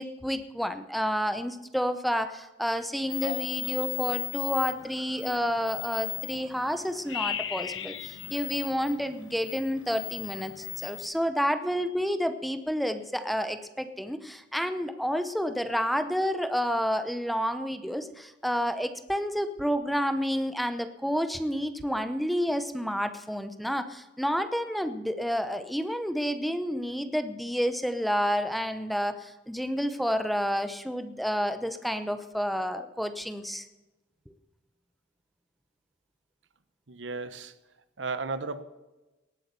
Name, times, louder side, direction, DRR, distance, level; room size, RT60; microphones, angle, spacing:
voice 1, 0.0-33.7 34.3-34.4, equal, ahead, 0.7 m, -30 dB
sound 1, 3.1-11.1, left 13 dB, 90° left, 1.1 m, -36 dB
voice 2, 36.9-37.5 38.0-38.6, right 3 dB, 80° right, 1.0 m, -34 dB
18.5 x 8.6 x 6.8 m
head